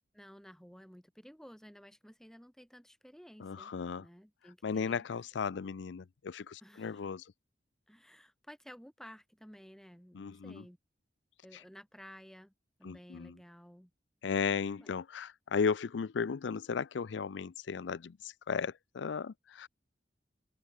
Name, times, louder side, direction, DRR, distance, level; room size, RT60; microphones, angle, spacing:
voice 1, 0.1-5.0 6.6-7.1 7.9-10.8 11.4-12.5 12.8-13.9 14.8-15.0, equal, 5° left, 3.5 m, -54 dB
voice 2, 3.4-4.0 4.6-7.3 10.1-10.6 11.5-11.6 12.8-13.4 14.2-19.7, left 5 dB, 85° left, 0.5 m, -35 dB
head